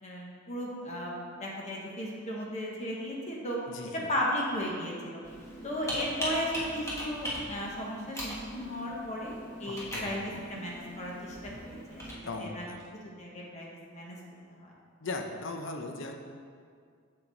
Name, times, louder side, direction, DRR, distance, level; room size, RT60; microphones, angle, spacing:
voice 1, 0.0-1.1 1.4-3.6 4.1-5.2 5.6-12.6 13.2-14.2 14.5-14.7, equal, 35° left, -3 dB, 1.0 m, -35 dB
voice 2, 3.7-4.1 9.7-10.6 12.3-12.8 15.0-16.1, left 2 dB, 65° left, 4 dB, 0.6 m, -39 dB
Computer keyboard, 5.2-12.1, equal, 15° left, 1.4 m, -39 dB
6.7 x 5.8 x 3.9 m, 2.1 s
head